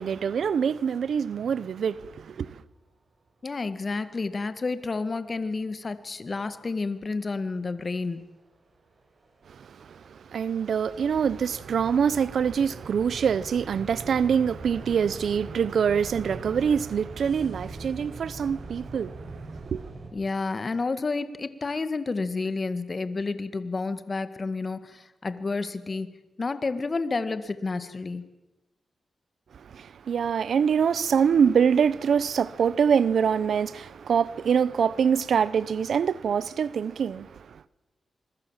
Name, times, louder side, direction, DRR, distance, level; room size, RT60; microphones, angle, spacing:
voice 1, 0.0-2.6 9.5-19.3 19.6-19.9 29.5-37.6, right 7 dB, 80° right, 0.8 m, -25 dB
voice 2, 3.4-8.2 20.1-26.1 26.4-28.2, left 3 dB, 40° left, 1.8 m, -30 dB
sound 1, 5.7-5.8 6.1-8.2 8.7-20.1, right 3 dB, 60° right, 7.6 m, -42 dB
27.5 x 22.5 x 7.4 m
cardioid pair, 75°, 0 cm